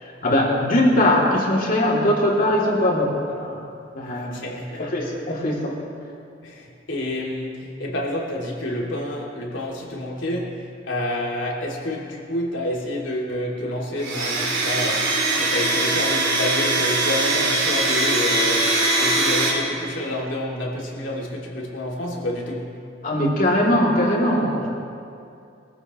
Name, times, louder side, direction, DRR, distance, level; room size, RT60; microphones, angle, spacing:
voice 1, 0.0-3.6 3.9-4.4 4.8-5.8 23.0-24.7, left 1 dB, 50° left, -3 dB, 3.0 m, -21 dB
voice 2, 4.1-4.9 6.4-22.8, left 1 dB, 80° left, -3 dB, 2.9 m, -29 dB
Domestic sounds home sounds, 14.0-19.5, right 2 dB, 75° right, 3.9 m, -21 dB
23.0 x 15.0 x 3.2 m, 2.5 s
head